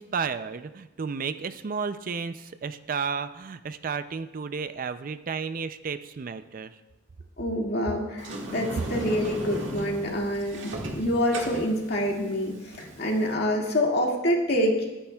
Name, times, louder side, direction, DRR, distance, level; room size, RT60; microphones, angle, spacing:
voice 1, 0.0-6.8, right 5 dB, 45° right, 11 dB, 0.4 m, -32 dB
voice 2, 7.4-14.9, equal, 55° left, -1 dB, 2.0 m, -26 dB
Sliding door, 8.2-13.3, right 1 dB, 70° right, 1.8 m, -36 dB
21.5 x 9.9 x 2.3 m, 1.0 s
head